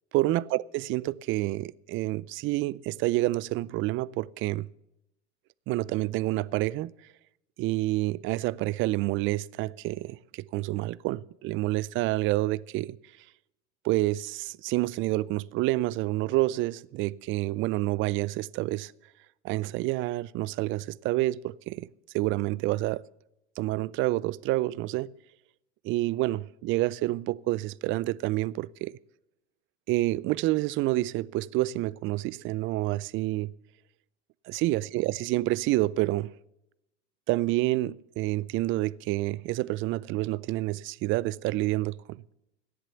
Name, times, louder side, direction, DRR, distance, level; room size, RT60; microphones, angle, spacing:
voice 1, 0.1-0.6 0.9-4.7 5.7-6.9 7.6-13.0 13.8-18.9 19.4-21.9 22.1-23.0 23.6-25.1 25.8-29.0 29.9-33.5 34.5-36.3 37.3-42.2, right 18 dB, 35° right, 0.4 m, -28 dB
13.5 x 10.5 x 6.8 m
hypercardioid pair, 105°, 36 cm